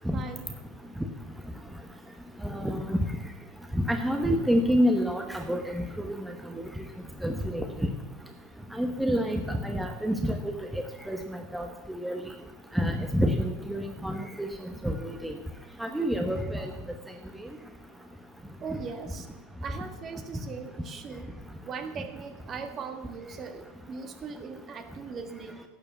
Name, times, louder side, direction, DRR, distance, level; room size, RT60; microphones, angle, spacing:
voice 1, 0.1-0.4 18.6-19.3 19.6-21.3 21.6-25.6, right 5 dB, 35° right, 7 dB, 1.6 m, -39 dB
voice 2, 2.4-3.1 3.7-6.6 7.2-7.9 8.7-12.3 12.7-14.5 14.8-15.4 15.8-16.7, equal, 5° right, 4 dB, 1.0 m, -28 dB
11.5 x 6.9 x 8.0 m, 1.1 s
hypercardioid pair, 105°, 0 cm